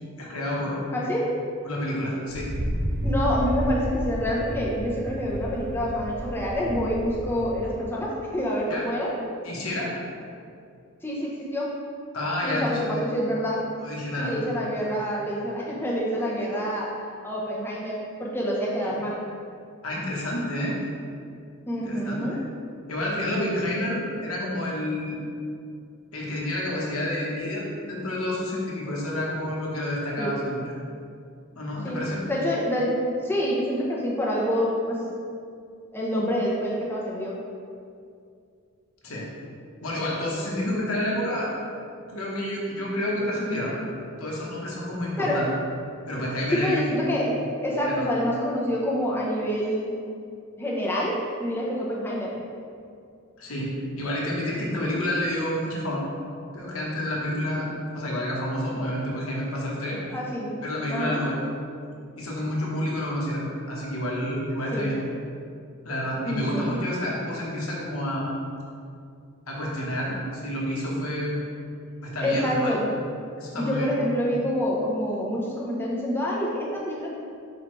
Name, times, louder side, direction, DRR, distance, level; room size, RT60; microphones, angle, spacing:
voice 1, 0.2-0.8 1.6-2.5 8.7-8.8 9.4-9.9 12.1-13.0 13.8-14.3 19.8-20.8 21.8-22.4 22.9-25.2 26.1-30.7 31.5-32.2 39.0-39.3 39.8-41.5 42.1-43.8 44.2-45.5 46.1-46.8 47.9-48.1 53.4-56.0 56.5-60.0 60.6-61.5 62.2-65.0 65.8-68.3 69.5-71.4 72.0-72.7 73.4-73.9, left 1 dB, 80° left, -4 dB, 1.2 m, -29 dB
voice 2, 0.9-1.3 3.0-9.1 11.0-11.7 12.4-13.7 14.2-16.9 17.2-19.2 21.7-22.4 30.2-30.4 31.8-32.0 32.3-35.0 35.9-37.4 45.2-45.4 46.5-49.9 50.6-52.4 60.1-60.5 60.9-61.2 64.7-64.9 66.2-66.7 72.2-72.9 73.6-77.1, equal, 10° left, -5 dB, 0.9 m, -27 dB
Wind, 2.3-7.8, equal, 45° right, 1.0 m, -31 dB
6.4 x 4.9 x 3.2 m, 2.4 s
head